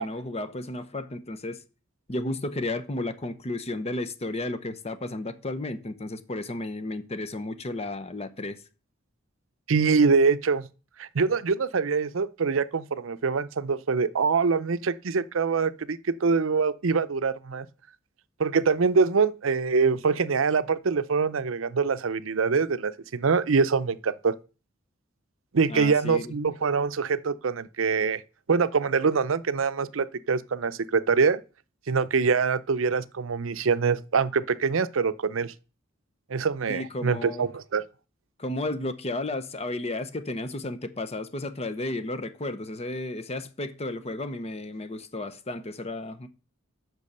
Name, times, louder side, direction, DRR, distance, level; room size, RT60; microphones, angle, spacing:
voice 1, 0.0-1.6 2.1-8.6 25.7-26.3 36.7-37.5 38.4-46.3, left 2 dB, 30° left, 0.9 m, -33 dB
voice 2, 9.7-10.7 11.0-17.7 18.4-24.3 25.5-28.2 28.5-31.4 31.9-35.5 36.3-37.8, right 5 dB, 85° right, 0.6 m, -24 dB
8.3 x 6.2 x 6.7 m
head